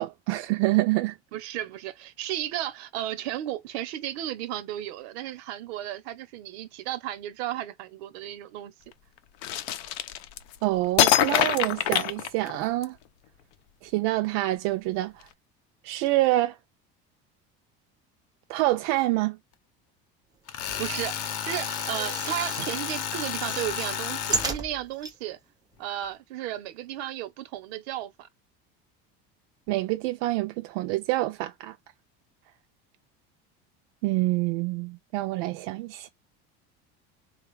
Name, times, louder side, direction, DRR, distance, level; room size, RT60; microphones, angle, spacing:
voice 1, 0.0-1.1 10.6-13.0 13.8-15.3 15.8-16.6 18.5-19.4 29.7-31.7 34.0-36.1, right 18 dB, 75° right, 0.5 m, -26 dB
voice 2, 1.3-8.7 20.8-25.4 25.8-28.3, right 12 dB, 90° right, 0.8 m, -34 dB
sound 1, 9.4-10.6 11.0-12.8, left 13 dB, 90° left, 0.6 m, -24 dB
Tools, 20.5-24.5, left 9 dB, 55° left, 0.7 m, -32 dB
sound 2, 20.6-22.8 23.2-25.2 25.7-25.8 26.0-26.1, right 4 dB, 15° right, 0.5 m, -35 dB
3.8 x 2.3 x 3.1 m
cardioid pair, 135°, 31 cm